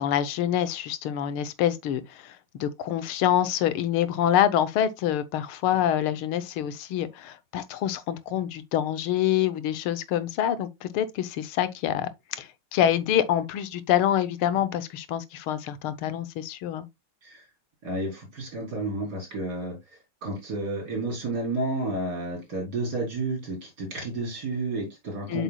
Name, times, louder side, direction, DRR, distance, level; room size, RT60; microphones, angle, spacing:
voice 1, 0.0-16.8 25.3-25.4, left 11 dB, 85° left, 1.7 m, -26 dB
voice 2, 17.8-19.8 20.2-25.4, right 2 dB, 50° right, 4.2 m, -31 dB
8.1 x 6.0 x 2.3 m
omnidirectional pair, 2.3 m